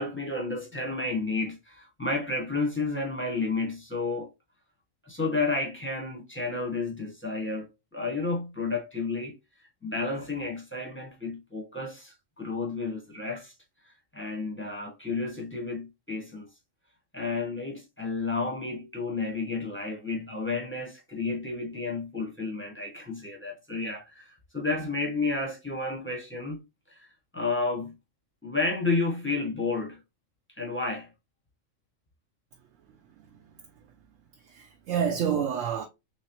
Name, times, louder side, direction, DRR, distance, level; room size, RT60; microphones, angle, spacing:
voice 1, 0.0-4.3 5.0-9.4 9.8-13.5 13.9-16.5 17.1-27.1 27.3-28.0 28.4-30.0 30.6-31.1, left 3 dB, 10° left, 0.7 m, -31 dB
voice 2, 32.9-33.9 34.3-35.9, right 8 dB, 75° right, 0.9 m, -31 dB
3.7 x 3.1 x 2.9 m
omnidirectional pair, 1.4 m